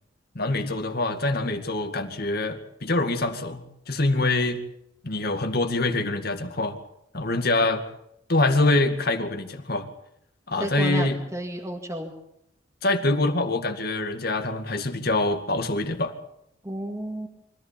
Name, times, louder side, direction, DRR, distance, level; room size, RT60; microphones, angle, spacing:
voice 1, 0.4-3.6 3.9-4.6 5.0-6.8 7.1-7.8 8.3-9.9 10.5-11.2 12.8-16.1, left 2 dB, 55° left, 7 dB, 2.2 m, -25 dB
voice 2, 10.6-12.1 16.6-17.3, equal, 15° right, 0 dB, 2.1 m, -32 dB
24.5 x 15.0 x 8.7 m, 0.77 s
head